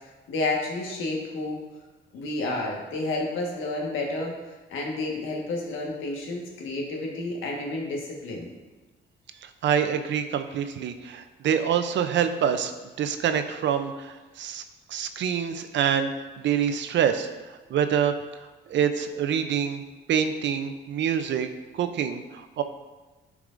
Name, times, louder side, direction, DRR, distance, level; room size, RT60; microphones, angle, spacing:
voice 1, 0.3-1.6 2.1-4.3 4.7-8.5, left 2 dB, 85° left, -1 dB, 1.4 m, -30 dB
voice 2, 9.6-12.7 13.0-14.6 14.9-16.1 16.4-17.3 17.7-18.1 18.7-19.8 20.1-21.5 21.7-22.6, right 8 dB, 65° right, 8 dB, 0.6 m, -26 dB
10.5 x 4.7 x 2.6 m, 1.2 s
cardioid pair, 90°, 20 cm